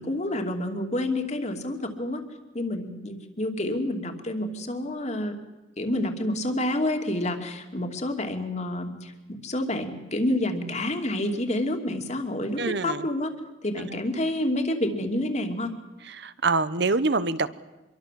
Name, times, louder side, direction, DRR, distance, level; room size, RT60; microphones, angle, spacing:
voice 1, 0.0-2.2 2.5-5.4 5.8-9.1 9.4-13.3 13.6-15.7, left 1 dB, 35° left, 5 dB, 2.8 m, -28 dB
voice 2, 12.6-13.0 16.2-17.5, right 3 dB, 60° right, 14 dB, 1.1 m, -25 dB
26.0 x 23.0 x 7.7 m, 1.1 s
head